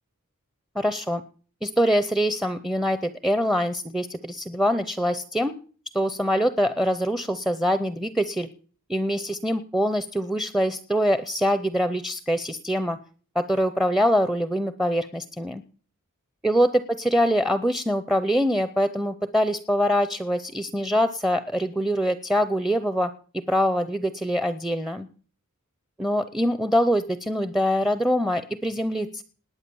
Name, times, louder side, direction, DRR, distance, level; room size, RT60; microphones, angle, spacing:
voice 1, 0.7-1.2 1.6-5.5 5.9-8.5 8.9-13.0 13.3-15.6 16.4-23.1 23.5-25.1 26.0-29.2, equal, ahead, 12 dB, 0.6 m, -24 dB
19.5 x 9.1 x 7.0 m, 0.42 s
head